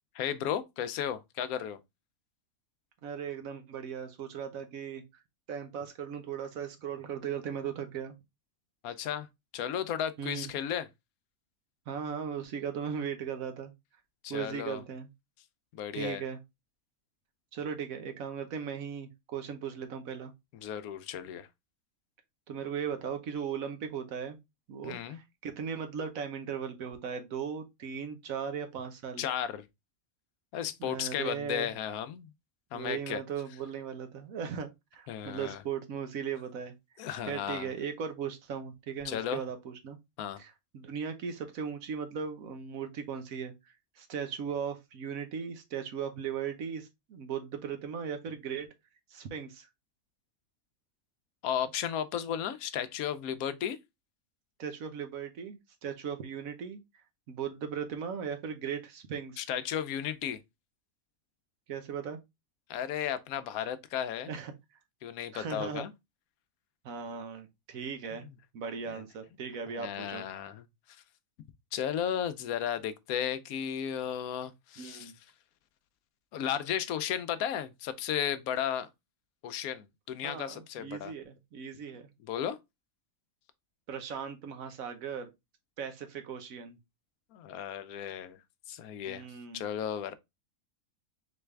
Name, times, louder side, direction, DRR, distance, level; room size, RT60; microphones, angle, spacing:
voice 1, 0.1-1.8 8.8-9.3 9.5-10.9 14.2-14.8 15.7-16.2 20.6-21.5 24.8-25.2 29.2-29.6 30.5-32.3 32.7-33.2 35.1-35.6 37.0-37.7 39.1-39.4 40.2-40.4 51.4-53.8 59.4-60.4 62.7-64.3 65.0-65.9 69.8-70.6 71.7-75.1 76.3-78.9 79.4-81.1 82.3-82.6 87.3-88.4 88.7-89.3 89.5-90.1, left 9 dB, 80° left, 1.0 m, -34 dB
voice 2, 3.0-5.2 5.5-8.2 10.2-10.5 11.9-13.7 14.3-15.1 15.9-16.4 17.5-20.3 22.5-24.4 24.7-29.2 30.8-31.7 32.7-36.7 37.2-40.0 40.4-48.7 49.1-49.7 54.6-56.8 57.3-59.5 61.7-62.2 64.3-64.5 65.3-65.8 66.8-68.3 68.5-70.2 74.8-75.1 80.2-82.1 83.9-85.3 85.8-86.8 89.1-89.7, right 7 dB, 70° right, 1.2 m, -38 dB
3.9 x 3.5 x 3.3 m
omnidirectional pair, 1.5 m